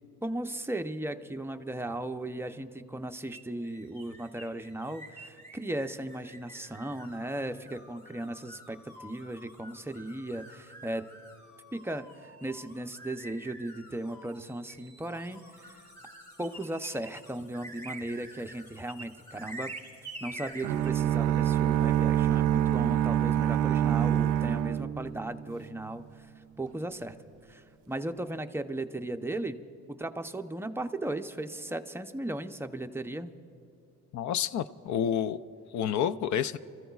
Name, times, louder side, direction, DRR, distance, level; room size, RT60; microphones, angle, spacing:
voice 1, 0.2-11.0 11.7-15.8 16.4-19.7 20.2-26.0 26.6-27.1 27.5-29.6 29.9-33.3, right 1 dB, 10° right, 6 dB, 0.6 m, -36 dB
sound 1, 3.3-21.0, right 1 dB, 10° left, 3.5 m, -48 dB
sound 2, 20.6-25.6, right 11 dB, 85° right, 0.5 m, -26 dB
voice 2, 34.1-35.4 35.7-36.6, left 9 dB, 70° left, 15 dB, 0.5 m, -29 dB
28.0 x 14.5 x 2.4 m, 2.7 s
cardioid pair, 90°, 30 cm